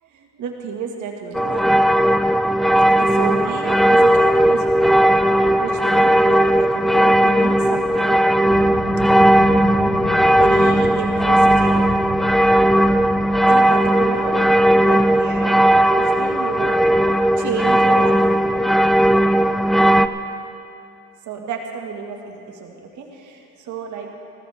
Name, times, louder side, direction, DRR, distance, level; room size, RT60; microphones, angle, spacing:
voice 1, 0.4-1.6 2.3-2.4 3.0-4.9 5.6-8.3 10.3-11.9 13.5-15.6 16.0-16.8 17.4-18.2 21.3-24.1, right 6 dB, 80° right, 2 dB, 1.7 m, -30 dB
sound 1, 1.3-20.1, right 1 dB, ahead, 0.4 m, -16 dB
sound 2, 8.3-14.3, left 2 dB, 50° left, 3.8 m, -31 dB
19.5 x 16.0 x 3.5 m, 2.6 s
cardioid pair, 90°, 30 cm